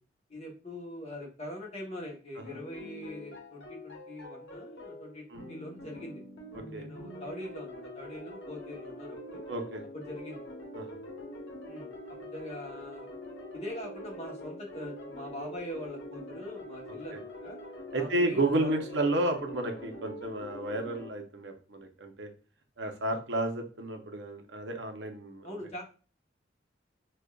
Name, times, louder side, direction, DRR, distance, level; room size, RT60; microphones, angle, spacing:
voice 1, 0.3-6.2 6.7-9.4 9.9-10.5 11.7-13.1 13.5-17.6 17.9-18.7 25.4-25.8, left 1 dB, 35° left, -1 dB, 1.0 m, -42 dB
sound 1, 2.4-21.1, left 1 dB, 85° left, 0.9 m, -44 dB
voice 2, 9.5-9.8 10.7-11.0 17.9-22.3 22.8-25.5, right 2 dB, 80° right, 4 dB, 0.7 m, -32 dB
5.0 x 2.4 x 2.3 m, 0.37 s
head